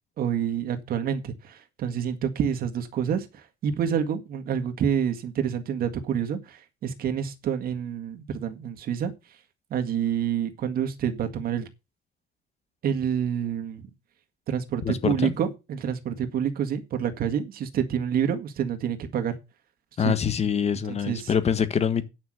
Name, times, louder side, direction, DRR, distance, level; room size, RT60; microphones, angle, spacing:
voice 1, 0.2-9.1 9.7-11.7 12.8-13.9 14.5-19.4 20.0-20.1 20.9-21.3, right 8 dB, 60° right, 1.9 m, -28 dB
voice 2, 14.8-15.3 20.0-22.1, left 7 dB, 40° left, 1.4 m, -25 dB
9.4 x 6.1 x 6.4 m
cardioid pair, 110°, 17 cm